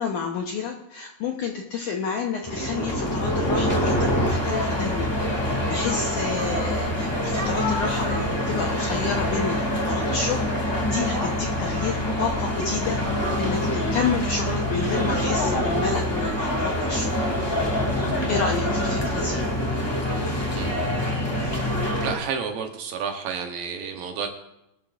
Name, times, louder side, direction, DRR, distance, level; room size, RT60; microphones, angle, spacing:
voice 1, 0.0-5.1 5.4-13.0 13.4-17.1 18.3-19.5, left 5 dB, 75° left, 1 dB, 1.8 m, -30 dB
sound 1, 2.4-22.2, left 1 dB, 20° left, 0.6 m, -25 dB
voice 2, 22.0-24.3, right 6 dB, 70° right, 4 dB, 2.4 m, -30 dB
24.0 x 12.0 x 2.5 m, 0.87 s
omnidirectional pair, 4.8 m